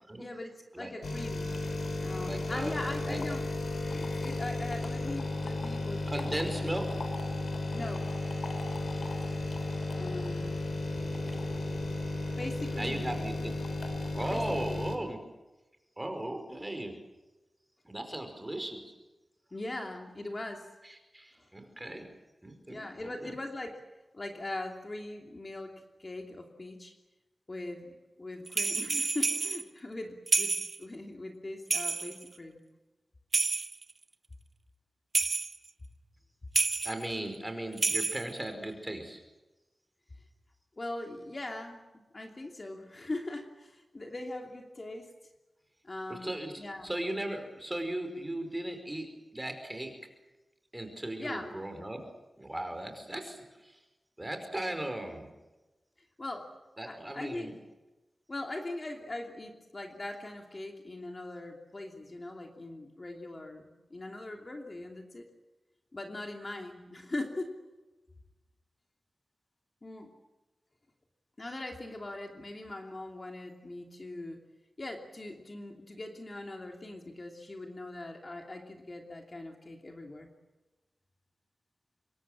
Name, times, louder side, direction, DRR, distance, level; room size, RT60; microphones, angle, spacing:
voice 1, 0.2-1.5 2.0-3.4 3.9-6.7 7.7-8.1 10.0-10.7 12.4-13.1 14.3-14.9 19.5-20.7 21.4-21.5 22.7-23.8 24.1-26.9 27.5-32.6 40.8-41.8 42.1-45.1 45.8-46.9 51.2-51.5 56.2-56.5 56.8-57.6 58.3-65.3 65.9-67.6 69.8-70.1 71.4-74.4 74.8-80.3, left 2 dB, 35° left, 3 dB, 2.9 m, -41 dB
sound 1, 1.0-15.0, left 2 dB, 70° left, 3.7 m, -34 dB
voice 2, 2.2-3.2 6.1-6.9 10.9-11.8 12.7-13.6 14.1-15.2 16.0-16.9 17.8-18.9 21.1-22.1 22.4-23.3 36.8-39.2 46.1-49.9 50.7-52.0 52.4-53.8 54.2-55.3 56.8-57.5, right 1 dB, 15° right, 6 dB, 5.0 m, -37 dB
sound 2, 28.5-29.6 30.3-30.8 31.7-32.3 33.3-33.9 35.1-35.6 36.6-37.1 37.7-38.4, right 3 dB, 50° right, 1.2 m, -29 dB
26.0 x 23.0 x 7.6 m, 1.1 s
wide cardioid pair, 110°, 0 cm